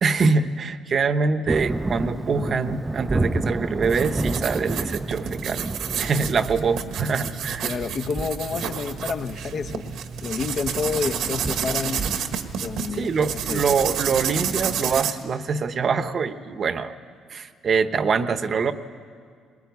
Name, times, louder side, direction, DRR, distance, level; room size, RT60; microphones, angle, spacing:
voice 1, 0.0-5.7 6.0-7.7 12.9-16.9 17.3-18.7, right 5 dB, 40° right, 11 dB, 1.0 m, -24 dB
Thunder, 1.5-14.7, right 2 dB, 15° right, 0.5 m, -32 dB
sound 1, 3.8-15.1, right 8 dB, 75° right, 1.5 m, -30 dB
voice 2, 7.6-9.9 10.2-12.1 12.6-13.6, left 5 dB, 45° left, 6 dB, 0.9 m, -29 dB
21.5 x 21.0 x 9.4 m, 2.1 s
cardioid pair, 125°, 0 cm